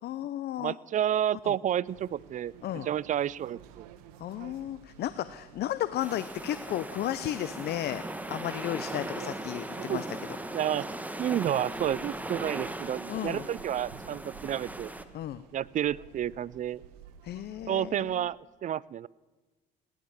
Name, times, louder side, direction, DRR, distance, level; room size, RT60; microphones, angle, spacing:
voice 1, 0.0-0.8 1.4-1.5 2.6-2.9 4.2-8.0 8.3-10.1 13.1-13.5 15.1-15.4 17.2-18.3, left 12 dB, 55° left, 14 dB, 0.7 m, -34 dB
voice 2, 0.6-3.9 9.2-9.3 9.7-10.0 10.5-10.9 11.2-14.9 15.5-16.8 17.7-19.1, right 10 dB, 40° right, 24 dB, 0.4 m, -30 dB
sound 1, 1.8-18.2, right 9 dB, 90° right, 1.1 m, -54 dB
sound 2, 6.0-15.0, right 1 dB, 10° right, 1.3 m, -38 dB
17.5 x 11.5 x 7.1 m, 1.2 s
supercardioid pair, 80°, 19 cm